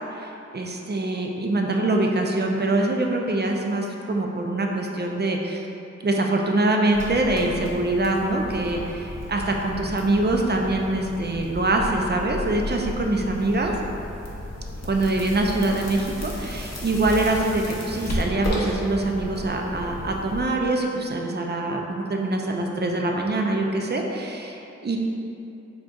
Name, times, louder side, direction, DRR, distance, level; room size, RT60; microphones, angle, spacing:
voice 1, 0.1-5.7 6.0-13.8 14.8-25.0, right 2 dB, 35° right, 1 dB, 0.4 m, -24 dB
sound 1, 6.9-20.5, left 1 dB, 60° left, 0.6 m, -33 dB
3.6 x 2.3 x 3.8 m, 2.9 s
wide cardioid pair, 50°, 29 cm